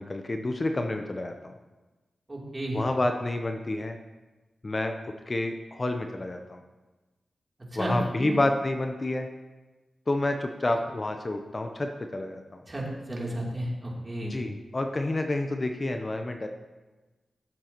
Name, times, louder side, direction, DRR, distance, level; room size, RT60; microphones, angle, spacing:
voice 1, 0.0-1.5 2.7-4.0 4.6-4.9 5.3-6.6 7.7-9.3 10.1-12.6 14.2-16.5, left 2 dB, 35° left, 5 dB, 0.7 m, -29 dB
voice 2, 2.3-2.8 7.7-8.3 12.7-14.4, right 1 dB, 30° right, -4 dB, 3.1 m, -32 dB
15.0 x 7.5 x 3.0 m, 1.2 s
cardioid pair, 60°, 0 cm